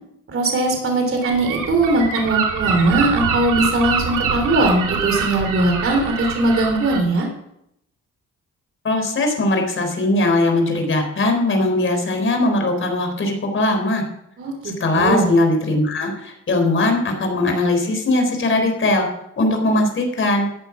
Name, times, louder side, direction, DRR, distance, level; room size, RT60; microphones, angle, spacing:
voice 1, 0.3-7.3 14.4-15.3, right 2 dB, 45° right, 3 dB, 3.4 m, -20 dB
Gull seagull, 1.2-7.0, right 6 dB, 85° right, 2.7 m, -24 dB
voice 2, 8.8-14.0 14.6-19.1 19.4-20.5, left 2 dB, 40° left, 4 dB, 3.9 m, -20 dB
14.0 x 8.3 x 6.1 m, 0.78 s
cardioid pair, 90°, 30 cm